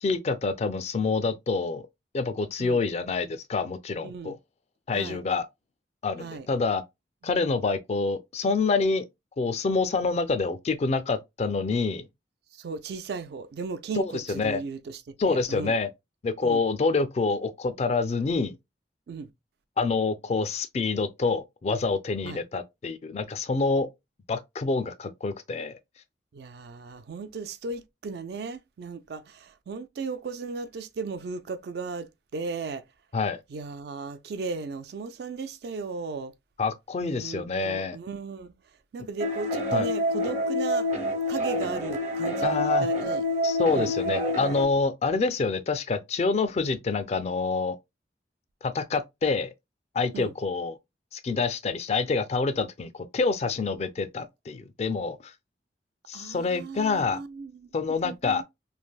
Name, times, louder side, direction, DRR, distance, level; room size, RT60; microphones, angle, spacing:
voice 1, 0.0-1.8 2.1-4.4 4.9-5.5 6.0-6.8 7.2-9.0 9.4-12.1 14.0-14.6 15.2-15.9 16.2-18.5 19.8-23.9 24.3-25.8 33.1-33.4 36.6-38.0 39.7-39.9 42.4-42.9 43.4-47.8 48.6-49.5 49.9-50.8 51.1-55.2 56.1-57.2 57.7-58.4, left 4 dB, 35° left, 0.3 m, -27 dB
voice 2, 4.0-4.3 4.9-5.2 6.2-6.5 12.5-15.8 16.4-16.6 19.1-19.3 22.2-22.4 26.3-32.8 33.5-36.3 37.0-38.5 38.9-40.9 41.3-43.2 43.7-43.9 50.1-50.3 56.1-57.7 58.0-58.4, right 4 dB, 60° right, 0.3 m, -36 dB
sound 1, 39.2-44.6, equal, 40° right, 0.9 m, -27 dB
3.3 x 2.5 x 2.2 m
head